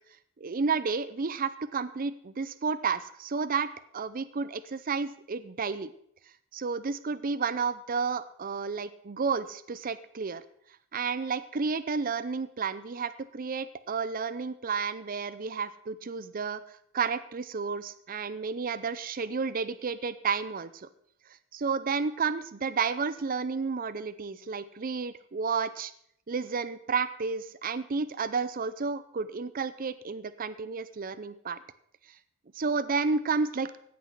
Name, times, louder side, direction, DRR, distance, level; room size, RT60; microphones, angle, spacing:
voice 1, 0.4-3.7 3.9-5.9 6.5-10.4 10.9-16.6 16.9-20.9 21.5-25.9 26.3-31.6 32.5-33.7, right 5 dB, 45° right, 14 dB, 0.6 m, -31 dB
17.0 x 6.1 x 6.0 m, 0.68 s
head